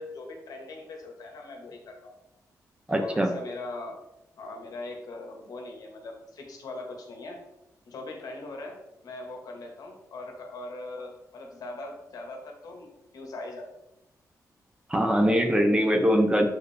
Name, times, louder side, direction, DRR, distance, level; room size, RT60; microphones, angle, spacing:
voice 1, 0.0-2.2 2.9-4.0 4.4-7.4 7.9-8.8 9.0-13.7, left 2 dB, 75° left, 2 dB, 1.3 m, -40 dB
voice 2, 2.9-3.3 14.9-16.5, equal, 15° right, 3 dB, 0.7 m, -22 dB
6.4 x 4.5 x 3.3 m, 0.91 s
wide cardioid pair, 125°, 6 cm